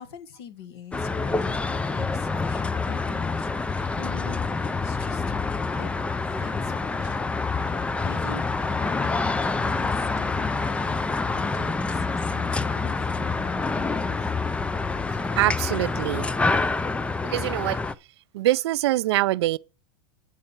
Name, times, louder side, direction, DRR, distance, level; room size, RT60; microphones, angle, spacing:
voice 1, 0.0-5.4 5.7-5.9 6.2-7.2 7.5-14.3, left 7 dB, 70° left, 1.6 m, -44 dB
sound 1, 0.9-17.9, left 3 dB, 10° left, 0.4 m, -27 dB
voice 2, 15.4-16.3 17.2-17.8 18.3-19.6, right 16 dB, 75° right, 0.4 m, -24 dB
8.8 x 4.3 x 7.2 m
supercardioid pair, 120°, 14 cm